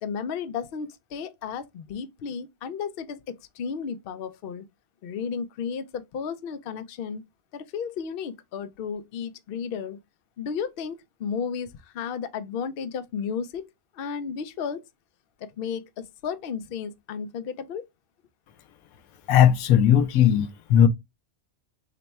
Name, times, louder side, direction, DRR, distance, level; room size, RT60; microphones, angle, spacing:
voice 1, 0.0-4.6 5.0-7.2 7.5-10.0 10.4-13.7 13.9-14.8 15.4-17.9, left 6 dB, 60° left, 0.6 m, -33 dB
voice 2, 19.3-20.9, left 9 dB, 90° left, 1.1 m, -18 dB
3.8 x 2.2 x 4.1 m
omnidirectional pair, 1.4 m